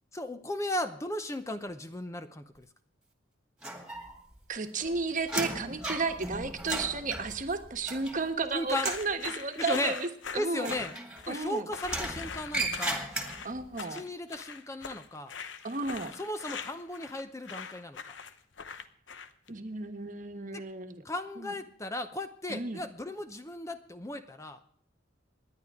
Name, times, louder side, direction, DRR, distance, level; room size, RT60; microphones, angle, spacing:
voice 1, 0.1-2.7 8.5-8.9 9.6-9.9 10.3-10.9 11.2-13.0 13.9-15.3 16.2-18.0 20.5-20.6 21.0-24.6, left 1 dB, 15° left, 9 dB, 0.7 m, -36 dB
sound 1, 3.6-4.4 4.7-8.4 8.7-9.1 10.6-11.4 11.8-13.6, right 1 dB, 5° right, 2.1 m, -36 dB
voice 2, 4.5-10.8 11.3-11.7 13.4-14.0 15.6-16.1 19.5-21.0 21.4-21.5 22.5-22.8, right 3 dB, 45° right, 7 dB, 1.3 m, -33 dB
sound 2, 8.7-19.5, left 6 dB, 75° left, 0.9 m, -42 dB
27.0 x 10.5 x 3.6 m, 0.65 s
head